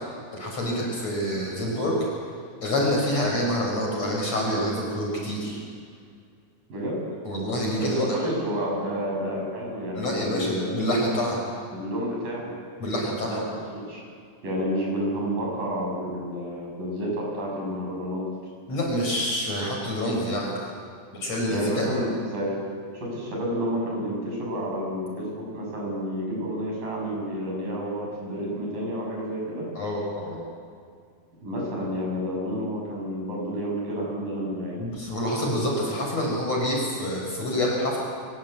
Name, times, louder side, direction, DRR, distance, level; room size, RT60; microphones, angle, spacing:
voice 1, 0.3-2.0 2.6-5.6 7.2-8.1 10.0-11.4 12.8-13.4 18.7-20.7 21.2-21.9 29.8-30.3 34.8-38.0, equal, 45° left, -1 dB, 6.2 m, -27 dB
voice 2, 7.8-10.7 11.7-12.5 13.3-14.0 14.4-18.2 21.5-22.6 22.9-29.7 31.4-34.8, equal, 65° right, -2 dB, 9.4 m, -30 dB
25.5 x 22.0 x 8.5 m, 2.2 s
omnidirectional pair, 4.3 m